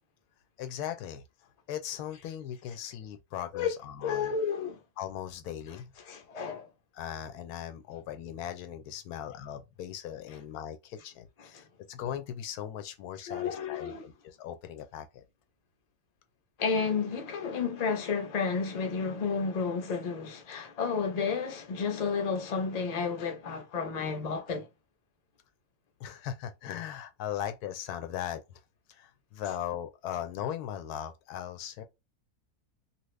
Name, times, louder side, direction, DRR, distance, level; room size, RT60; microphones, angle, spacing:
voice 1, 0.6-1.2 1.7-4.3 5.0-5.9 6.9-15.2 26.0-28.6 28.9-31.8, left 10 dB, 90° left, 1.1 m, -38 dB
voice 2, 4.0-4.8 6.0-6.7 11.5-11.6 13.3-14.0 16.6-24.7, left 5 dB, 40° left, 0.6 m, -31 dB
2.8 x 2.4 x 3.1 m
omnidirectional pair, 1.6 m